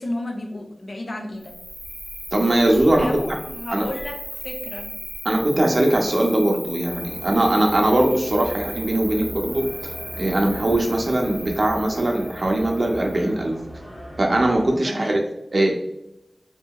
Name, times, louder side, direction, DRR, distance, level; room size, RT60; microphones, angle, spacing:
voice 1, 0.0-1.5 3.0-4.9 14.8-15.2, left 1 dB, 50° left, 2 dB, 0.5 m, -32 dB
Cricket, 1.4-13.4, equal, 15° right, 0.9 m, -36 dB
voice 2, 2.3-3.1 3.7-3.9 5.2-9.7 10.2-13.5 14.2-15.2 15.5-15.7, right 1 dB, 50° right, 1 dB, 0.6 m, -20 dB
sound 1, 6.8-14.8, equal, 20° left, 1.0 m, -39 dB
2.8 x 2.6 x 2.2 m, 0.87 s
wide cardioid pair, 90°, 0 cm